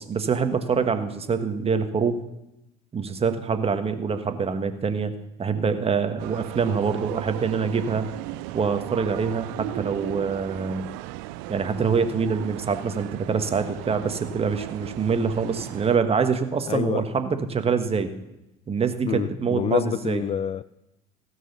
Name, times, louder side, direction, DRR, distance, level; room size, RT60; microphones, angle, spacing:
voice 1, 0.0-2.2 2.9-5.1 5.4-8.1 8.5-10.9 11.5-18.1 18.7-20.2, right 5 dB, 30° right, 9 dB, 1.4 m, -25 dB
sound 1, 6.2-16.0, right 18 dB, 70° right, 0.5 m, -36 dB
voice 2, 16.7-17.0 19.0-20.6, left 9 dB, 30° left, 17 dB, 0.4 m, -27 dB
16.5 x 6.4 x 6.8 m, 0.91 s
hypercardioid pair, 70°, 19 cm